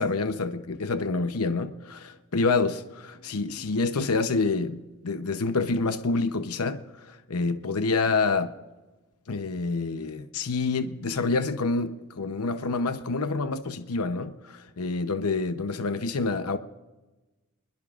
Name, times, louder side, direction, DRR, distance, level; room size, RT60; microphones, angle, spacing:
voice 1, 0.0-8.5 9.3-16.6, left 3 dB, 75° left, 0.8 m, -27 dB
27.5 x 21.0 x 2.5 m
head